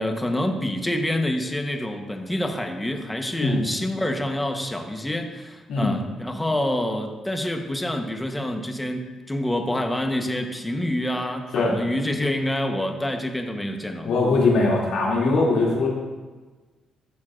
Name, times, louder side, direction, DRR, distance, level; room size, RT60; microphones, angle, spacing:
voice 1, 0.0-14.2, left 1 dB, 10° left, 5 dB, 1.0 m, -27 dB
voice 2, 14.1-15.9, left 3 dB, 80° left, -4 dB, 2.5 m, -21 dB
12.0 x 7.0 x 2.5 m, 1.3 s
cardioid pair, 90°, 0 cm